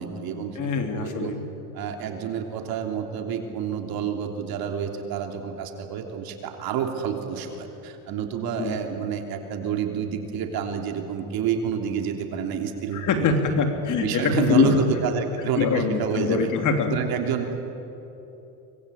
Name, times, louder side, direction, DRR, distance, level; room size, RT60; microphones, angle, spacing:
voice 1, 0.0-0.6 0.9-1.3 1.7-13.6 14.0-16.5 16.8-17.6, right 7 dB, 55° right, 4 dB, 3.4 m, -29 dB
voice 2, 0.5-1.5 8.6-8.7 12.9-14.8 15.6-16.9, left 5 dB, 45° left, 5 dB, 3.3 m, -23 dB
24.5 x 21.5 x 8.8 m, 3.0 s
supercardioid pair, 115°, 43 cm